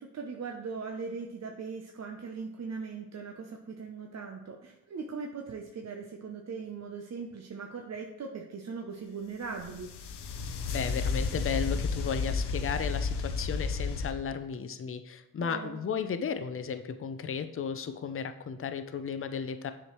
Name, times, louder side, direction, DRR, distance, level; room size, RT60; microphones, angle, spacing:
voice 1, 0.0-9.9 15.4-15.8, right 5 dB, 40° right, 2 dB, 0.8 m, -40 dB
sound 1, 9.5-14.1, left 4 dB, 75° left, 0.8 m, -32 dB
voice 2, 10.7-19.7, left 6 dB, 35° left, 9 dB, 0.6 m, -34 dB
7.4 x 4.9 x 3.1 m, 0.92 s
supercardioid pair, 50°, 40 cm